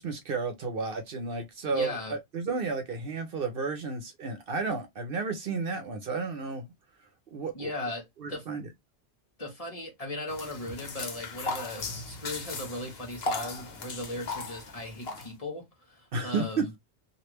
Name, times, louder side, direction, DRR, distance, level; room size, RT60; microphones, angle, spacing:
voice 1, 0.0-6.7 7.3-7.7 8.2-8.7 16.1-16.6, right 4 dB, 60° right, 0.8 m, -32 dB
voice 2, 1.7-2.1 7.5-8.5 9.4-16.7, left 1 dB, 35° left, 1.2 m, -38 dB
sound 1, 10.3-15.3, left 3 dB, 65° left, 1.1 m, -37 dB
3.2 x 2.5 x 3.0 m
omnidirectional pair, 1.1 m